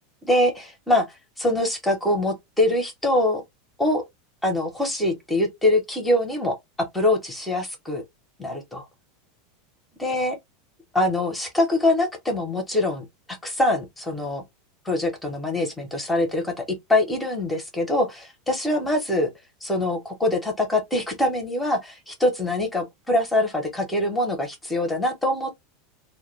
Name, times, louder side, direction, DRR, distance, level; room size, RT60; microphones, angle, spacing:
voice 1, 0.2-1.1 1.4-3.4 3.8-4.0 4.4-8.0 8.4-8.8 10.0-10.4 10.9-14.4 14.8-16.6 16.9-19.3 19.6-25.5, left 1 dB, 5° left, 0.7 m, -24 dB
2.2 x 2.1 x 3.0 m
supercardioid pair, 160°, 0 cm